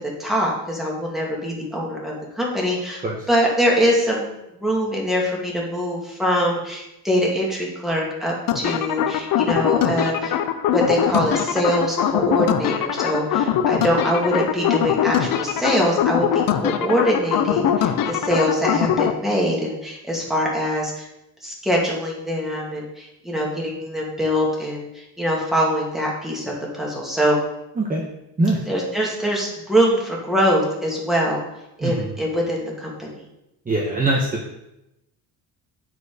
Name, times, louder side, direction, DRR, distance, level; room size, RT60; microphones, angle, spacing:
voice 1, 0.0-4.3 4.6-10.4 10.7-21.1 21.4-27.4 28.7-31.4 31.8-33.2, equal, ahead, -3 dB, 2.6 m, -23 dB
sound 1, 8.5-19.1, left 9 dB, 65° left, 0.8 m, -22 dB
voice 2, 31.8-32.2 33.7-34.6, right 2 dB, 20° right, -1 dB, 1.2 m, -22 dB
9.3 x 4.7 x 5.0 m, 0.89 s
cardioid pair, 110°, 37 cm